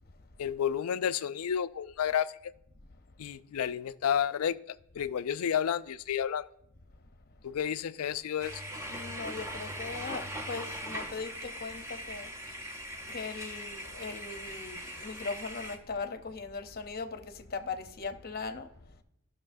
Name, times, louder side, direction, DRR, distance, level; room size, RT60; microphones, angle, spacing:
voice 1, 0.4-2.5 3.2-6.5 7.4-8.6, left 8 dB, 75° left, 0.4 m, -31 dB
sound 1, 8.4-15.8, equal, 15° right, 0.7 m, -40 dB
voice 2, 8.9-12.8 13.1-19.0, left 4 dB, 45° left, 0.7 m, -39 dB
13.5 x 6.2 x 2.6 m
head